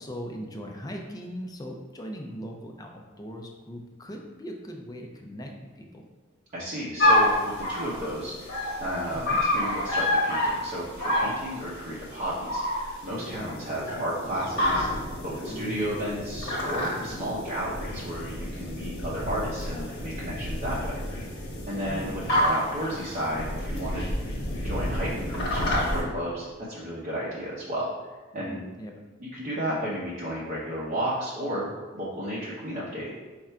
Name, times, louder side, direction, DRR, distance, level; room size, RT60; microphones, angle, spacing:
voice 1, 0.0-6.0 9.1-9.4 13.3-13.6 15.5-15.8 16.9-17.2 21.7-22.4 24.2-24.5 28.4-28.9, equal, 20° left, 2 dB, 0.5 m, -40 dB
voice 2, 6.5-21.0 21.7-24.1 24.6-27.9 28.3-28.6 29.2-31.7 31.9-33.1, equal, 40° right, -8 dB, 0.7 m, -33 dB
sound 1, 7.0-26.0, left 1 dB, 55° left, 1.0 m, -28 dB
4.4 x 2.5 x 4.3 m, 1.3 s
head